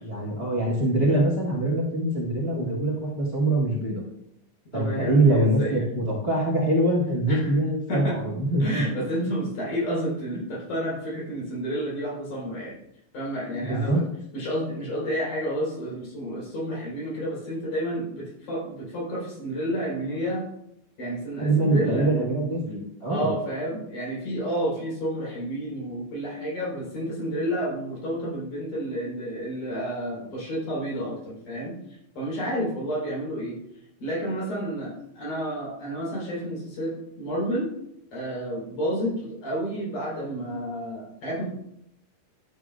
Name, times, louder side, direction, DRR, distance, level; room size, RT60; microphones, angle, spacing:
voice 1, 0.0-4.0 4.7-8.8 13.6-14.0 21.4-23.3, right 1 dB, 35° right, -3 dB, 0.9 m, -24 dB
voice 2, 4.7-5.8 6.2-6.4 7.3-7.6 7.9-8.2 8.6-12.8 13.1-14.0 14.3-20.4 21.0-22.1 23.1-31.7 32.2-33.6 34.0-37.7 38.1-41.4, equal, 75° left, -5 dB, 5.4 m, -30 dB
12.5 x 8.3 x 2.4 m, 0.75 s
omnidirectional pair, 3.6 m